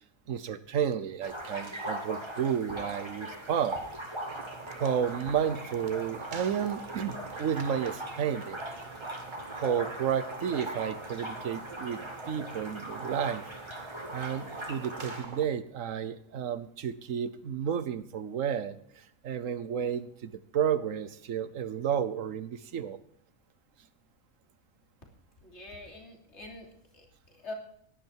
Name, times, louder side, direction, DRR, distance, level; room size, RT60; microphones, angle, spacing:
voice 1, 0.3-3.8 4.8-8.6 9.5-13.5 14.1-23.0, right 8 dB, 70° right, 15 dB, 1.2 m, -32 dB
sound 1, 1.2-15.2, right 1 dB, 20° right, 2.2 m, -40 dB
sound 2, 4.2-15.4, right 4 dB, 35° right, 1.2 m, -45 dB
voice 2, 25.4-27.5, left 2 dB, 50° left, 1 dB, 3.4 m, -45 dB
17.0 x 11.0 x 4.6 m, 0.69 s
omnidirectional pair, 1.5 m